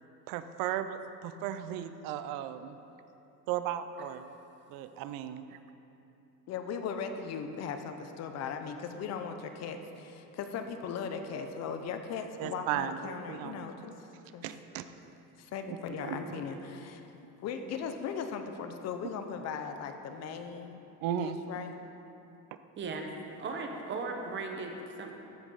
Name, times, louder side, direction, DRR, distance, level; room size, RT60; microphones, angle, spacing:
voice 1, 0.3-2.8 3.5-4.3 4.7-5.6 12.4-13.7 14.4-15.0 15.7-15.8 21.0-21.4, right 10 dB, 80° right, 11 dB, 0.6 m, -35 dB
voice 2, 6.5-14.5 15.4-17.0 17.4-20.8 21.2-21.7, left 6 dB, 50° left, 7 dB, 0.7 m, -38 dB
voice 3, 15.9-16.5 22.8-23.1 23.4-25.1, right 3 dB, 35° right, 3 dB, 1.0 m, -38 dB
14.0 x 5.1 x 5.6 m, 2.9 s
cardioid pair, 160°, 33 cm